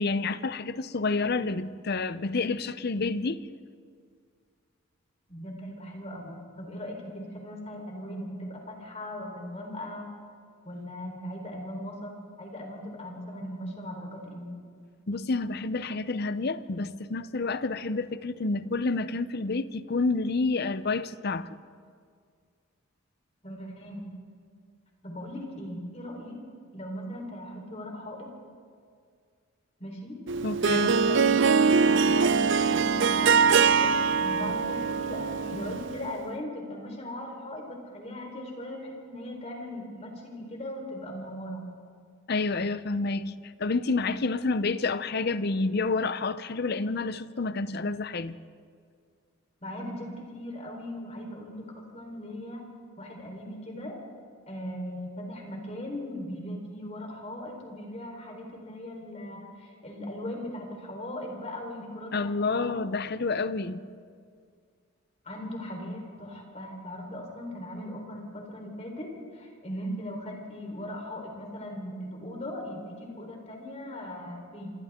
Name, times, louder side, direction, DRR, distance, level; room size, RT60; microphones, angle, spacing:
voice 1, 0.0-3.4 15.1-21.5 30.4-31.0 42.3-48.4 62.1-63.8, left 3 dB, 45° left, 0.6 m, -29 dB
voice 2, 5.3-10.1 10.6-14.5 23.4-24.1 25.0-26.4 26.7-28.3 29.8-30.2 30.7-31.3 31.8-41.6 49.6-52.6 53.0-54.0 54.5-62.7 63.1-63.2 63.5-63.6 65.2-74.7, left 1 dB, 30° left, 4.1 m, -39 dB
Harp, 30.3-36.1, right 5 dB, 55° right, 0.5 m, -23 dB
27.5 x 26.0 x 3.7 m
head